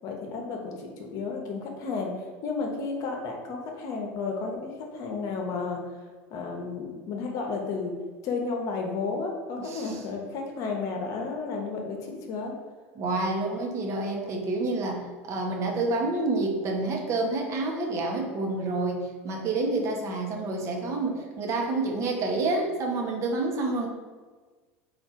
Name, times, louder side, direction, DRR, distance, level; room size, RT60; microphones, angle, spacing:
voice 1, 0.0-2.1 2.4-5.8 6.3-7.9 8.2-12.5, left 4 dB, 55° left, 2 dB, 0.8 m, -32 dB
voice 2, 9.6-10.0 13.0-23.9, right 2 dB, 45° right, 1 dB, 0.8 m, -28 dB
3.4 x 2.4 x 4.3 m, 1.4 s
hypercardioid pair, 85°, 7 cm